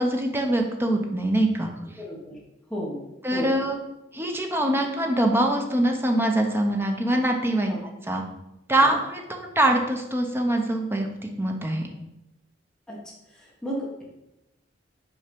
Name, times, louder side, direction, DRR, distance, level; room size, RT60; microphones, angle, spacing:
voice 1, 0.0-1.7 3.2-3.8 4.1-7.7 8.1-8.2 8.7-11.9, right 1 dB, 10° right, 2 dB, 0.8 m, -23 dB
voice 2, 2.0-2.4 2.7-3.0 3.3-3.5 7.7-7.8 8.8-9.0 12.9-13.0 13.3-14.0, equal, 5° left, -4 dB, 1.3 m, -33 dB
5.5 x 4.8 x 5.3 m, 0.92 s
head